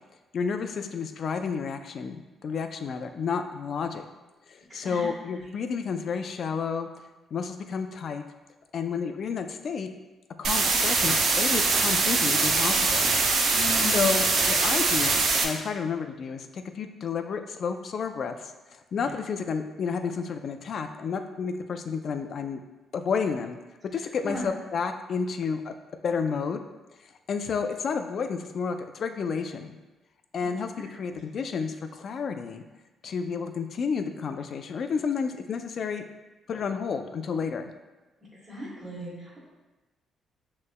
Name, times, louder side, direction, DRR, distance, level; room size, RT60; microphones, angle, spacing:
voice 1, 0.3-4.0 4.5-6.9 7.3-8.2 8.7-9.9 10.4-13.1 13.8-18.3 18.7-22.6 22.9-23.6 23.9-25.7 26.0-26.6 27.3-29.8 30.3-32.6 33.0-36.0 36.5-37.7, left 5 dB, 55° left, 7 dB, 0.4 m, -31 dB
voice 2, 4.7-5.4 13.5-14.2 19.0-19.1 24.2-24.5 30.8-31.2 38.5-39.4, left 1 dB, 30° right, -10 dB, 1.4 m, -37 dB
sound 1, 10.4-15.4, right 4 dB, 70° right, 0.6 m, -23 dB
6.4 x 3.2 x 2.2 m, 1.1 s
cardioid pair, 90°, 0 cm